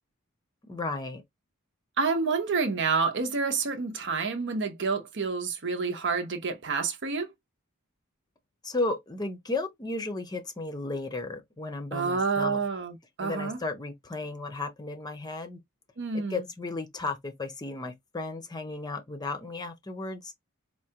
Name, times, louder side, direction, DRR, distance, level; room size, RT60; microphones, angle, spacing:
voice 1, 0.6-1.2 8.6-12.6 13.2-15.6 16.1-20.3, left 3 dB, 20° left, 0.6 m, -34 dB
voice 2, 2.0-7.3 11.9-13.6 16.0-16.4, right 4 dB, 55° right, 0.7 m, -28 dB
4.6 x 2.2 x 2.8 m
head